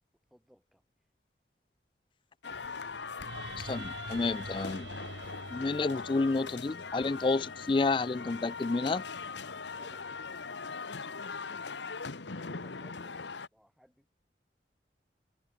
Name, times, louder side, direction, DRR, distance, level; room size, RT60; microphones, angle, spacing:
voice 1, 0.3-0.8 9.7-10.8 11.3-11.8 12.5-14.1, equal, ahead, 5.8 m, -62 dB
sound 1, 2.4-13.5, left 4 dB, 85° left, 1.2 m, -41 dB
sound 2, 2.5-10.6, right 2 dB, 90° right, 2.3 m, -48 dB
voice 2, 3.6-4.9 5.5-9.0, left 3 dB, 25° left, 0.3 m, -30 dB
head